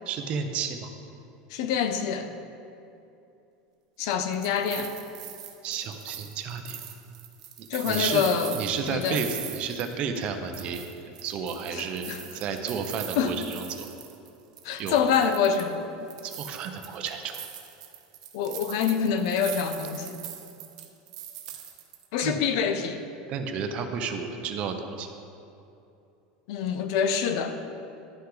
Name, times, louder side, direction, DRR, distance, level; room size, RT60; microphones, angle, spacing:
voice 1, 0.1-0.9 5.6-6.8 7.8-8.2 8.5-12.1 12.3-13.9 14.8-15.0 16.2-17.4 22.2-22.4 23.3-25.1, right 6 dB, 35° right, 6 dB, 0.6 m, -32 dB
voice 2, 1.5-2.3 4.0-4.9 7.7-8.5 8.9-9.2 11.7-12.2 13.2-13.3 14.6-15.9 18.3-20.2 22.1-23.0 26.5-27.6, left 7 dB, 60° left, 8 dB, 0.6 m, -26 dB
sound 1, 4.1-10.3 10.5-14.3 14.6-15.7 16.1-22.2, right 11 dB, 80° right, 0.9 m, -41 dB
11.5 x 5.7 x 3.8 m, 2.7 s
supercardioid pair, 170°, 3 cm